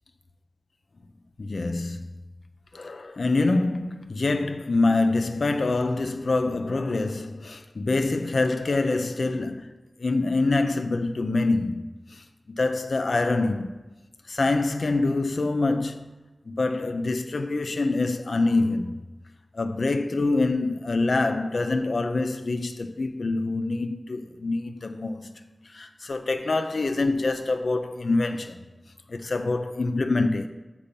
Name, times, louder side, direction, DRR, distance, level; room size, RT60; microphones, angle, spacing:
voice 1, 1.4-2.1 2.7-13.8 14.3-16.1 16.5-19.1 19.5-28.6 29.1-30.5, left 3 dB, 75° left, 0.5 m, -25 dB
7.1 x 4.8 x 5.2 m
wide cardioid pair, 55°, 0 cm